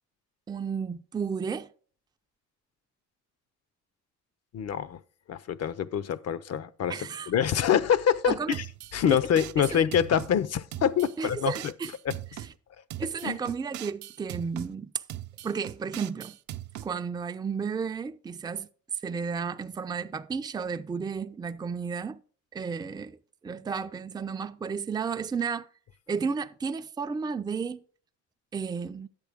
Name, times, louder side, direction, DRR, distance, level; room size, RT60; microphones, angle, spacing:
voice 1, 0.5-1.7 6.9-7.3 8.3-8.6 9.1-9.2 9.6-9.8 11.2-11.9 13.0-14.9 15.4-16.4 16.8-18.7 19.0-22.2 22.5-23.2 23.4-25.7 26.1-27.8 28.5-29.1, right 5 dB, 15° right, 0.4 m, -32 dB
voice 2, 4.5-5.0 5.3-8.6 8.9-11.7 12.0-12.4 13.2-13.4, left 8 dB, 55° left, 0.6 m, -26 dB
sound 1, 8.5-10.3 10.7-12.5 12.9-14.7 15.1-16.9, right 13 dB, 70° right, 0.6 m, -40 dB
10.5 x 8.0 x 3.5 m
cardioid pair, 90°, 30 cm